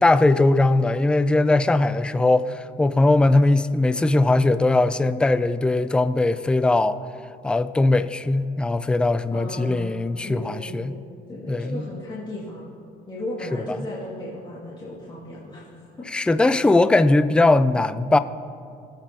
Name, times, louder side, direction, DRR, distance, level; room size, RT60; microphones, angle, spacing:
voice 1, 0.0-7.0 7.4-10.9 11.5-11.8 16.1-18.2, left 2 dB, 5° left, 12 dB, 0.3 m, -20 dB
voice 2, 9.3-10.0 10.2-11.0 11.3-12.7 13.1-16.0, left 1 dB, 25° left, -7 dB, 2.2 m, -35 dB
21.5 x 8.2 x 2.9 m, 2.4 s
cardioid pair, 110°, 17 cm